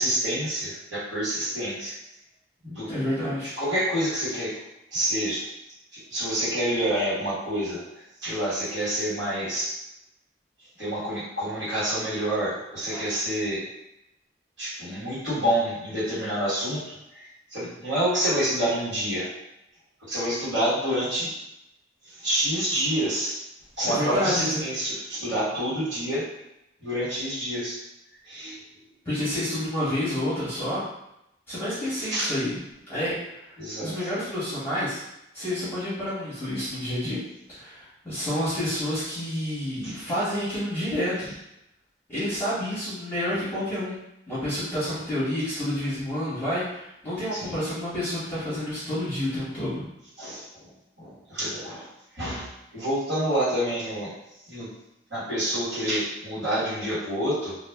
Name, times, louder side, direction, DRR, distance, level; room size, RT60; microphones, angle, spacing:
voice 1, 0.0-1.9 2.6-2.9 3.4-4.6 4.9-5.5 5.9-9.7 10.8-13.7 14.6-19.3 20.0-21.3 22.0-23.3 23.8-26.3 26.8-27.8 28.2-28.6 32.0-32.3 33.6-34.1 39.8-39.9 47.3-47.5 50.2-50.7 51.0-54.1 54.5-54.7 55.1-57.6, right 1 dB, 70° right, -10 dB, 1.4 m, -28 dB
voice 2, 2.9-3.6 23.9-24.6 29.0-30.8 31.5-32.6 32.9-33.5 33.8-35.0 35.3-37.2 37.6-41.3 42.1-44.0 44.3-49.9, left 1 dB, 10° left, -12 dB, 0.9 m, -29 dB
2.4 x 2.0 x 3.4 m, 0.84 s
head